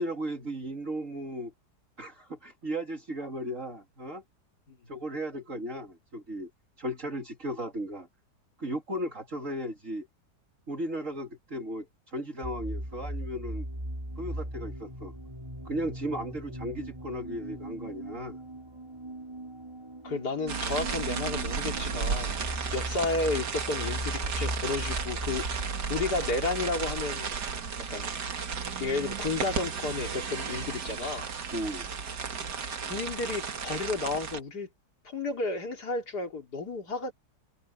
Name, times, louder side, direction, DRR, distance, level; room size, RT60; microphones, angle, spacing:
voice 1, 0.0-1.5 2.0-4.2 4.9-6.5 6.8-8.1 8.6-10.1 10.7-13.6 14.2-15.1 15.6-18.4 31.5-31.9, right 1 dB, 45° right, 3.2 m, -35 dB
sound 1, 12.4-28.0, right 1 dB, 15° right, 5.4 m, -39 dB
voice 2, 20.0-25.5 25.9-27.4 27.9-28.1 28.8-31.3 32.9-34.7 35.0-37.1, left 3 dB, 70° left, 3.4 m, -32 dB
sound 2, 20.5-34.4, right 5 dB, 75° right, 2.3 m, -34 dB
omnidirectional pair, 1.8 m